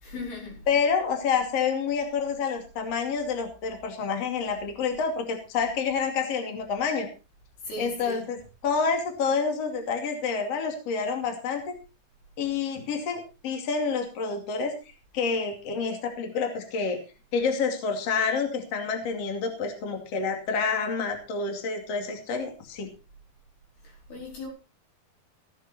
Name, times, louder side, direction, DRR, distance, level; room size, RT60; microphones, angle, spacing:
voice 1, 0.0-0.6 7.6-8.3 23.8-24.5, left 2 dB, 60° left, 6.7 m, -38 dB
voice 2, 0.7-7.1 7.8-11.7 12.4-14.7 15.1-17.0 17.3-22.9, left 5 dB, 40° left, 3.0 m, -28 dB
16.0 x 9.8 x 4.3 m
omnidirectional pair, 5.1 m